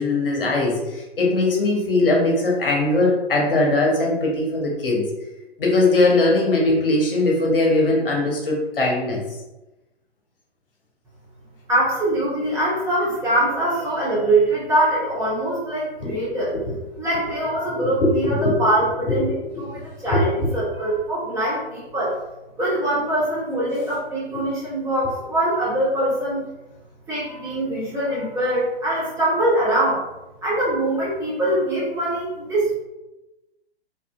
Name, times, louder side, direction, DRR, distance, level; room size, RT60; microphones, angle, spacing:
voice 1, 0.0-5.0 5.6-9.2 16.0-16.2 16.5-16.6 17.7-18.6 19.1-19.3 19.7-19.8 20.1-20.5, left 2 dB, 60° left, -2 dB, 0.8 m, -20 dB
voice 2, 11.7-16.5 17.0-19.3 19.6-22.1 22.6-26.4 27.1-30.0 30.4-32.7, right 1 dB, 10° right, -9 dB, 0.8 m, -23 dB
2.6 x 2.5 x 2.3 m, 1.0 s
figure-of-eight pair, 115°, 31 cm